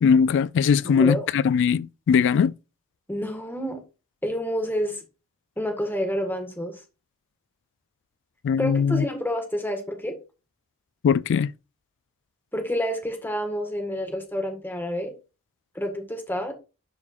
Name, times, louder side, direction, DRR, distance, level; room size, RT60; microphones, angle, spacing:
voice 1, 0.0-2.5 8.4-9.1 11.0-11.5, left 6 dB, 55° left, 0.3 m, -20 dB
voice 2, 0.8-1.3 3.1-3.8 4.2-5.0 5.6-6.8 8.6-10.2 12.5-15.1 15.7-16.5, equal, 10° left, 1.7 m, -28 dB
11.0 x 4.7 x 2.5 m
head